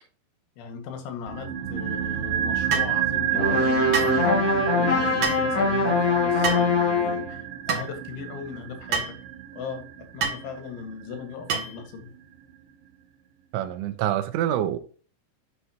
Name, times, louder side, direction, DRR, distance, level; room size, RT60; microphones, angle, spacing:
voice 1, 0.6-4.3 4.7-7.4 7.7-9.2 9.5-9.9 10.1-12.1, left 6 dB, 80° left, 4.3 m, -38 dB
sound 1, 1.3-11.5 11.8-11.9, right 11 dB, 65° right, 3.1 m, -30 dB
sound 2, 2.7-2.9 3.9-4.2 5.2-5.5 6.4-6.7 7.7-7.9 8.9-9.2 10.2-10.4 11.5-11.8, right 5 dB, 50° right, 2.2 m, -27 dB
sound 3, 3.3-7.3, left 3 dB, 45° left, 1.2 m, -23 dB
voice 2, 13.5-14.8, right 11 dB, 85° right, 3.3 m, -26 dB
11.5 x 7.9 x 2.9 m
omnidirectional pair, 5.3 m